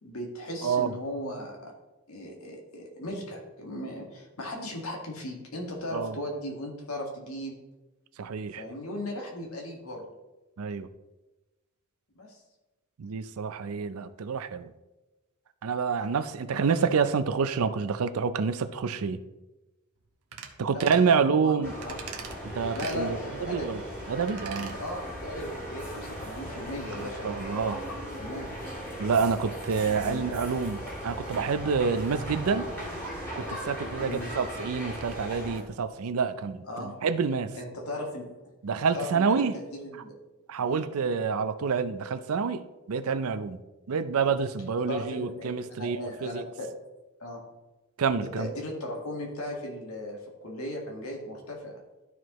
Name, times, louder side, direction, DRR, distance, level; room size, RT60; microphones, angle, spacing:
voice 1, 0.0-1.7 2.1-7.6 8.5-10.1 12.1-12.4 16.5-16.7 20.7-21.0 21.3-21.5 21.8-21.9 22.7-23.2 23.5-23.7 24.7-28.5 29.9-30.3 34.0-34.3 36.7-37.0 37.5-38.3 38.9-40.1 40.6-40.8 44.9-46.7 47.2-47.4 48.2-51.7, left 1 dB, 70° left, 0 dB, 1.7 m, -37 dB
voice 2, 0.6-0.9 5.9-6.1 8.2-8.6 10.6-10.9 13.0-14.7 15.6-19.2 20.6-21.7 22.5-23.8 24.1-24.8 27.0-27.8 29.0-32.7 33.3-37.5 38.6-39.6 40.5-42.6 42.9-43.6 43.9-46.4 48.0-48.5, right 5 dB, 70° right, 13 dB, 0.5 m, -28 dB
sound 1, 20.3-20.5 20.8-21.1 21.8-22.3 22.7-23.0 24.2-24.7 25.1-25.2, right 7 dB, 90° right, 0.9 m, -41 dB
sound 2, 21.6-35.6, equal, 10° left, 2.0 m, -38 dB
12.5 x 4.7 x 3.0 m, 1.1 s
head